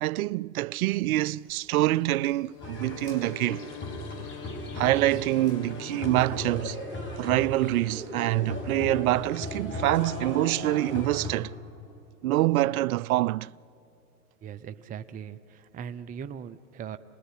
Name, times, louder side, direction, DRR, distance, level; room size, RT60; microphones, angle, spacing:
voice 1, 0.0-3.6 4.7-6.8 7.2-11.5 12.2-13.5, right 16 dB, 65° right, 0.5 m, -26 dB
sound 1, 0.9-6.4, left 3 dB, 75° left, 4.3 m, -55 dB
Wind instrument woodwind instrument, 2.4-6.6, left 11 dB, 55° left, 1.2 m, -45 dB
sound 2, 2.6-11.3, left 1 dB, 25° left, 6.4 m, -37 dB
voice 2, 14.4-17.0, right 8 dB, 20° right, 0.7 m, -39 dB
28.0 x 20.0 x 10.0 m
hypercardioid pair, 105°, 47 cm